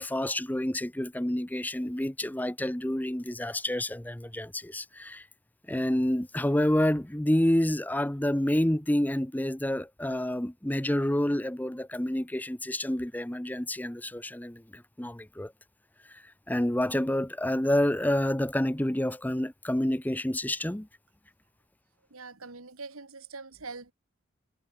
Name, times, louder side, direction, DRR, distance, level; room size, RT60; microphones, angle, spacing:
voice 1, 0.0-5.3 5.7-15.5 16.1-20.9, left 1 dB, 10° left, 0.7 m, -28 dB
voice 2, 22.1-23.9, right 4 dB, 90° right, 2.5 m, -43 dB
head